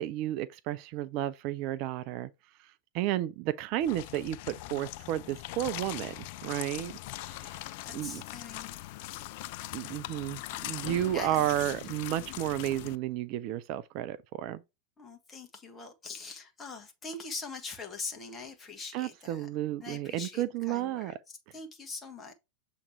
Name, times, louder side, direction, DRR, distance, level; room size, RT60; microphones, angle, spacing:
voice 1, 0.0-2.3 2.6-6.2 6.4-6.9 7.2-8.2 9.7-14.6 18.9-21.1, right 13 dB, 40° right, 0.4 m, -32 dB
sound 1, 3.8-13.0, left 16 dB, 50° left, 0.3 m, -41 dB
voice 2, 7.8-8.7 11.1-11.7 15.0-19.5 19.8-22.3, left 4 dB, 20° left, 1.4 m, -43 dB
7.1 x 3.1 x 4.7 m
figure-of-eight pair, 90°, 0 cm